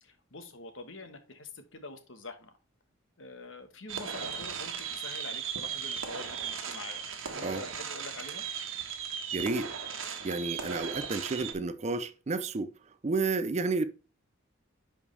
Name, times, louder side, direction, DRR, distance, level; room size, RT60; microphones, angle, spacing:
voice 1, 0.0-2.5 3.2-7.0 7.3-8.4, left 3 dB, 65° left, 1.3 m, -46 dB
sound 1, 3.9-11.5, right 7 dB, 70° right, 1.3 m, -37 dB
voice 2, 9.3-9.7 10.2-12.7 13.0-13.9, right 3 dB, 35° right, 0.5 m, -31 dB
10.5 x 5.0 x 3.3 m
head